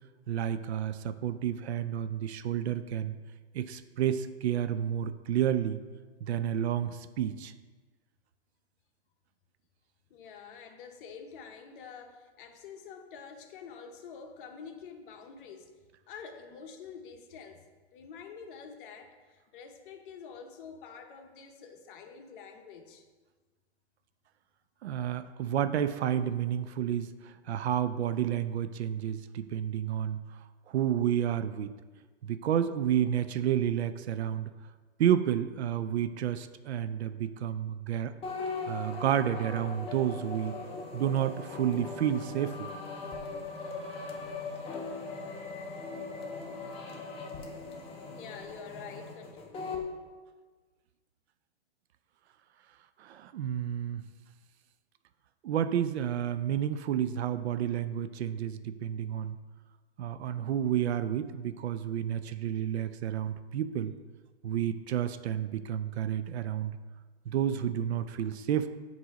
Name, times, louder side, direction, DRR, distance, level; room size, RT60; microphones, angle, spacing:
voice 1, 0.3-3.1 3.5-5.8 6.2-7.5 24.8-30.2 30.7-31.7 32.2-34.5 35.0-38.1 38.7-40.6 40.9-42.7 53.0-54.0 55.4-59.4 60.0-63.9 64.4-66.8 67.3-68.7, right 10 dB, 75° right, 11 dB, 0.5 m, -30 dB
voice 2, 10.1-15.8 16.1-17.7 17.9-23.1 48.0-49.6, left 6 dB, 50° left, 5 dB, 0.8 m, -47 dB
sound 1, 38.2-49.9, left 3 dB, 15° left, 0.7 m, -39 dB
7.7 x 2.7 x 4.9 m, 1.4 s
hypercardioid pair, 125°, 34 cm